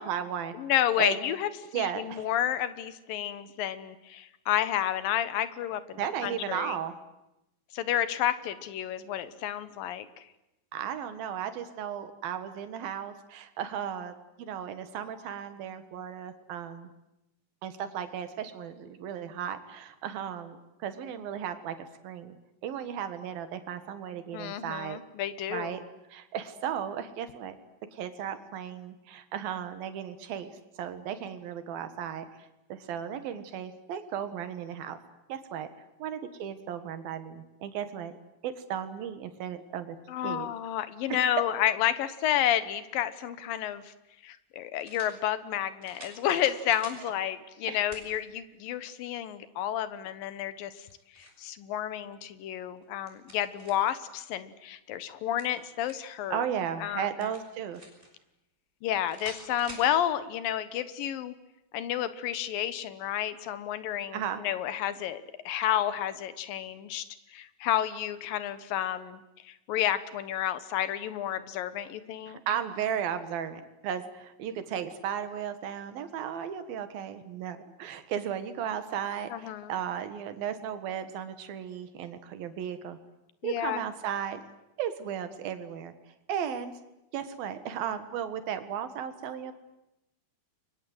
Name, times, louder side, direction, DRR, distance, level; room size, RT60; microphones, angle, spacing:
voice 1, 0.0-0.5 1.0-1.2 1.7-2.2 6.0-6.9 10.7-16.9 17.6-22.4 22.6-25.0 25.5-25.8 26.1-27.6 27.9-35.0 35.3-35.7 36.0-38.1 38.4-40.0 40.2-40.5 41.1-41.3 47.2-47.3 47.7-47.8 56.3-57.8 64.1-64.4 72.3-83.0 83.4-84.4 84.8-85.9 86.3-86.7 87.1-89.5, right 9 dB, 75° right, 10 dB, 3.4 m, -35 dB
voice 2, 0.6-6.8 7.7-10.1 24.3-25.8 40.1-43.9 44.2-50.9 51.2-56.4 56.8-57.3 58.8-61.3 61.7-67.0 67.3-72.4 79.3-79.7 83.4-83.8, left 11 dB, 75° left, 13 dB, 2.8 m, -31 dB
sound 1, 43.5-43.6 44.8-45.2 45.8-47.0 47.9-48.1 48.7-48.8 50.6-51.4 52.8-54.0 55.1-56.1 57.2-58.1 59.1-59.9, right 1 dB, 15° right, 5.8 m, -48 dB
30.0 x 23.5 x 8.0 m, 0.92 s
omnidirectional pair, 4.3 m